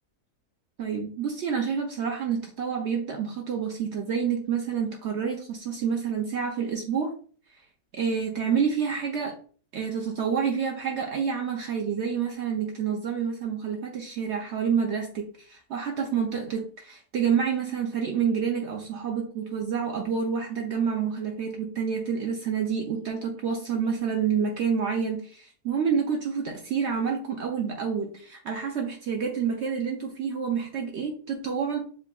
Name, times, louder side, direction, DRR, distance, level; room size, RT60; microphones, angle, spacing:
voice 1, 0.8-7.1 7.9-9.4 9.7-31.8, right 6 dB, 75° right, 2 dB, 0.6 m, -28 dB
7.3 x 2.5 x 2.2 m, 0.43 s
omnidirectional pair, 1.8 m